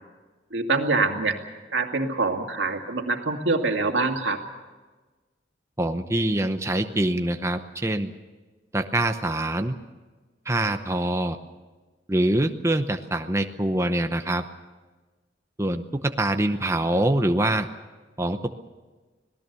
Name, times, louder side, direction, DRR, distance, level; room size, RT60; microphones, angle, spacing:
voice 1, 0.5-1.4 1.7-4.4, right 3 dB, 85° right, 4 dB, 2.4 m, -25 dB
voice 2, 5.8-8.1 8.7-9.8 10.5-11.4 12.1-14.4 15.6-17.7 18.2-18.5, right 1 dB, 15° right, 6 dB, 0.8 m, -24 dB
26.5 x 18.5 x 6.9 m, 1.3 s
head